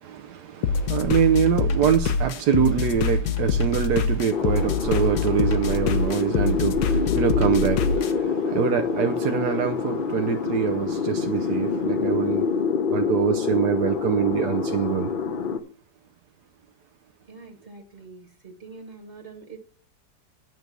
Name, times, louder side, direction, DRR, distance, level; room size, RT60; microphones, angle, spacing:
voice 1, 0.0-12.6 12.9-15.1, right 9 dB, 75° right, 1.2 m, -24 dB
sound 1, 0.6-8.1, left 5 dB, 70° left, 1.3 m, -25 dB
sound 2, 4.3-15.6, left 5 dB, 40° left, 0.8 m, -26 dB
voice 2, 17.3-19.6, right 4 dB, 35° right, 1.5 m, -44 dB
9.3 x 6.6 x 6.0 m
omnidirectional pair, 1.8 m